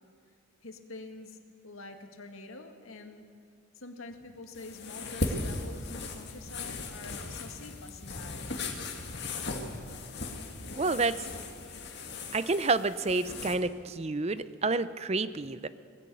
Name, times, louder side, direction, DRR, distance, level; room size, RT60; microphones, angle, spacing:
voice 1, 0.6-1.4 1.6-3.3 3.7-8.6, left 3 dB, 80° left, 5 dB, 2.0 m, -46 dB
sound 1, 4.1-10.8, left 1 dB, 35° left, 0.9 m, -49 dB
sound 2, 4.5-13.5, left 3 dB, 50° left, 2.1 m, -38 dB
voice 2, 10.8-11.2 12.3-15.7, right 3 dB, 30° right, 14 dB, 0.5 m, -29 dB
20.0 x 15.5 x 8.5 m, 2.3 s
head